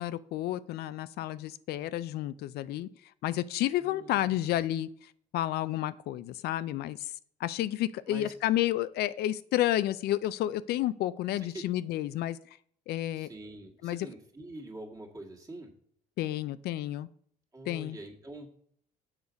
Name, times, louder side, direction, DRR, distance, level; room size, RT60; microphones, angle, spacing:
voice 1, 0.0-2.9 3.2-7.1 7.4-12.4 12.9-13.3 13.8-14.1 16.2-17.1 17.7-18.0, left 13 dB, 70° left, 0.4 m, -31 dB
voice 2, 3.8-4.6 8.1-8.3 11.4-11.7 13.1-15.7 17.5-18.5, right 2 dB, 20° right, 1.9 m, -45 dB
7.2 x 6.5 x 5.1 m
cardioid pair, 110°, 17 cm